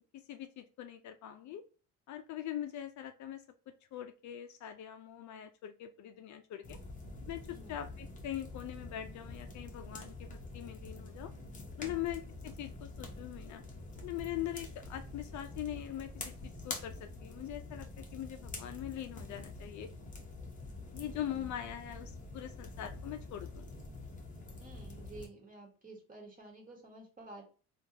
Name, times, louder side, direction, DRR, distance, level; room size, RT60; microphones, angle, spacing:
voice 1, 0.1-1.6 2.1-3.4 3.9-6.8 7.3-11.3 11.8-13.6 14.0-19.9 20.9-23.7, left 11 dB, 55° left, 8 dB, 0.5 m, -42 dB
sound 1, 6.6-25.3, left 3 dB, 20° left, 0.8 m, -46 dB
voice 2, 21.0-21.6 24.6-27.4, right 2 dB, 25° right, 0 dB, 1.4 m, -52 dB
3.5 x 2.4 x 2.7 m, 0.36 s
cardioid pair, 100°, 35 cm